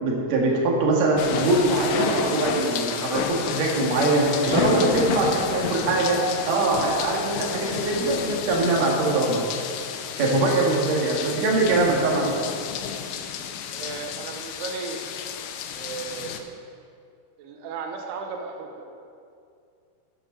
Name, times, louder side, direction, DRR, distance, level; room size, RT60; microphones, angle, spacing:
voice 1, 0.0-6.2 6.5-9.4 10.2-12.4, right 2 dB, 55° right, -2 dB, 2.3 m, -22 dB
sound 1, 1.2-16.4, left 8 dB, 85° left, 2.7 m, -31 dB
voice 2, 4.4-5.4 10.5-10.6 13.7-15.1 15.8-16.6 17.4-18.9, right 4 dB, 85° right, 3 dB, 2.9 m, -35 dB
9.4 x 7.8 x 6.2 m, 2.4 s
omnidirectional pair, 4.6 m